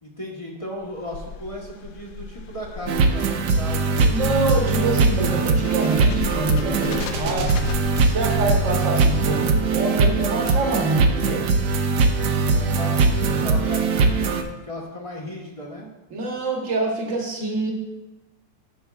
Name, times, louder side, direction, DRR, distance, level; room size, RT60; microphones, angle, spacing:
voice 1, 0.0-4.2 4.8-4.9 12.3-15.9, left 1 dB, 20° left, -2 dB, 1.0 m, -36 dB
sound 1, 0.8-9.1, left 6 dB, 85° left, 1.3 m, -35 dB
sound 2, 2.9-14.4, right 4 dB, 70° right, 1.3 m, -21 dB
voice 2, 4.1-7.5 8.0-11.5 16.1-17.7, right 2 dB, 45° right, 0 dB, 1.5 m, -26 dB
12.5 x 6.1 x 2.4 m, 1.1 s
omnidirectional pair, 2.0 m